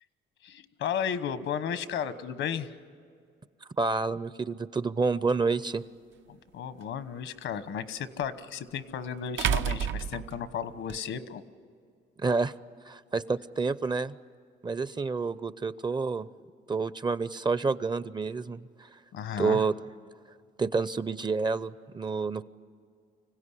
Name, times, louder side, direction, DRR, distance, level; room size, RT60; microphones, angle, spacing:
voice 1, 0.4-2.7 6.3-11.4 19.1-19.6, left 8 dB, 80° left, 13 dB, 1.2 m, -34 dB
voice 2, 3.8-5.8 12.2-12.5 12.9-14.1 14.6-16.3 16.7-18.9 19.4-19.7 20.6-22.4, right 4 dB, 20° right, 16 dB, 0.6 m, -29 dB
sound 1, 5.5-5.6 8.2-8.3 9.4-11.0, right 8 dB, 75° right, 0.7 m, -30 dB
25.5 x 16.5 x 9.9 m, 2.2 s
cardioid pair, 90°, 20 cm